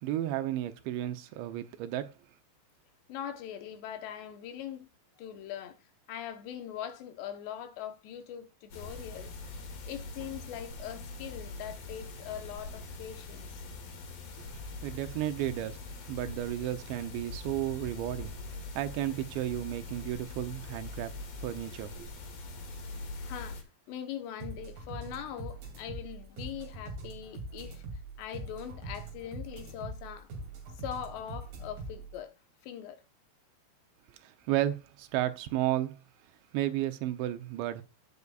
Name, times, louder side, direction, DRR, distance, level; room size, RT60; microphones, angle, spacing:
voice 1, 0.0-2.1 14.8-15.8 16.1-21.1 21.4-22.1 34.2-36.0 36.5-37.8, right 13 dB, 90° right, 3.1 m, -33 dB
voice 2, 3.1-4.9 5.2-5.8 6.1-9.3 9.8-13.6 23.2-23.6 23.9-27.8 28.2-30.3 30.8-32.4 32.6-33.0, left 10 dB, 80° left, 3.2 m, -41 dB
sound 1, 8.7-23.6, left 2 dB, 60° left, 3.7 m, -43 dB
sound 2, 24.4-32.2, right 2 dB, 55° right, 4.4 m, -42 dB
18.0 x 6.7 x 2.4 m
omnidirectional pair, 5.0 m